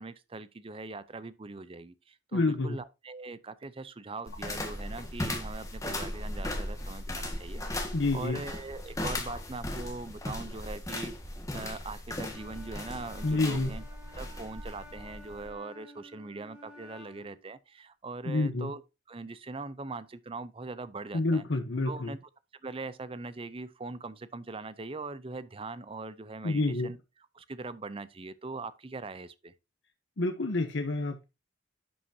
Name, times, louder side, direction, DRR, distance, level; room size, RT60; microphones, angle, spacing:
voice 1, 0.0-7.6 8.1-11.1 11.5-13.8 14.2-18.8 19.1-21.4 21.9-22.2 22.6-27.0 27.3-29.5, right 3 dB, 30° right, 0.6 m, -41 dB
voice 2, 2.3-2.8 7.9-8.4 9.3-9.4 13.2-13.7 18.2-18.7 21.1-22.2 26.4-26.9 30.2-31.2, left 2 dB, 85° left, 1.0 m, -28 dB
sound 1, 4.3-15.5, left 1 dB, 20° left, 1.7 m, -37 dB
Wind instrument woodwind instrument, 12.2-17.4, left 2 dB, 5° right, 2.6 m, -52 dB
11.0 x 5.8 x 2.8 m
head